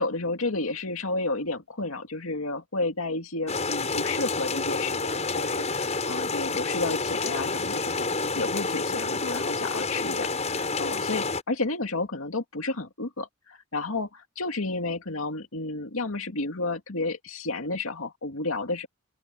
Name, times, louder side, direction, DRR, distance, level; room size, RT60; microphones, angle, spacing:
voice 1, 0.0-14.1 14.4-18.9, left 3 dB, 80° left, 2.2 m, -31 dB
sound 1, 3.5-11.4, left 3 dB, 30° left, 6.5 m, -29 dB
open air
head